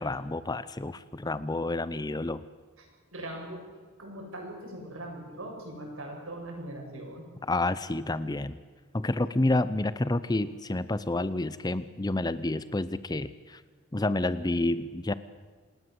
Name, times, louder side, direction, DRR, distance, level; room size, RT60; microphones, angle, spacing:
voice 1, 0.0-2.4 7.4-8.6 8.9-13.6 13.9-15.1, left 2 dB, 20° left, 15 dB, 0.6 m, -29 dB
voice 2, 3.1-3.6 4.0-7.2, right 1 dB, 65° right, 1 dB, 7.9 m, -40 dB
28.0 x 19.5 x 8.0 m, 1.4 s
head